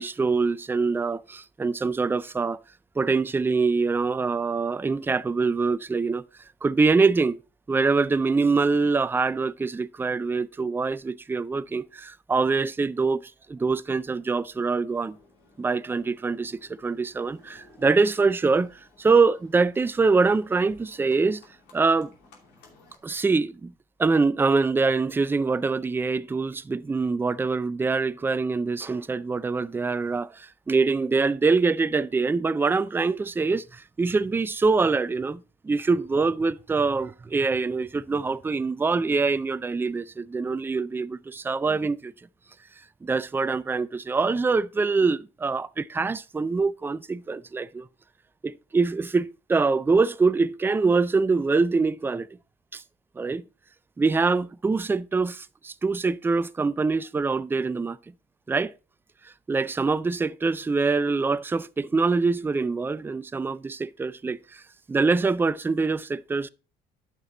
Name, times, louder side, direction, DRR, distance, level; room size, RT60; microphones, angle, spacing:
voice 1, 0.0-2.6 3.0-6.2 6.6-7.4 7.7-13.2 13.5-15.2 15.6-21.4 21.7-22.1 23.0-23.7 24.0-42.1 43.0-47.9 48.4-52.3 52.7-52.8 53.2-53.4 54.0-58.0 58.5-58.7 59.2-64.6 64.9-66.5, right 4 dB, 15° right, 0.3 m, -24 dB
Livestock farm animals working animals, 14.9-23.0, left 3 dB, 85° left, 2.6 m, -57 dB
9.1 x 5.9 x 3.8 m
cardioid pair, 110°, 17 cm